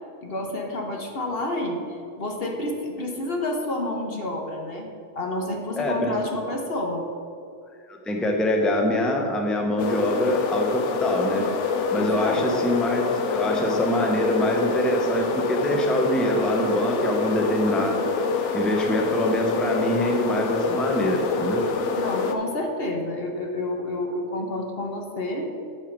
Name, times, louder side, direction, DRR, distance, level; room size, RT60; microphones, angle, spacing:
voice 1, 0.2-4.9 5.1-7.0 11.9-12.4 21.9-25.5, left 1 dB, 55° left, 2 dB, 1.2 m, -29 dB
voice 2, 5.8-6.1 7.9-11.4 11.9-13.0 13.3-18.0 18.5-21.6, equal, ahead, 1 dB, 0.8 m, -24 dB
sound 1, 9.8-22.4, left 4 dB, 75° left, 1.0 m, -26 dB
9.1 x 6.5 x 5.2 m, 2.5 s
omnidirectional pair, 1.2 m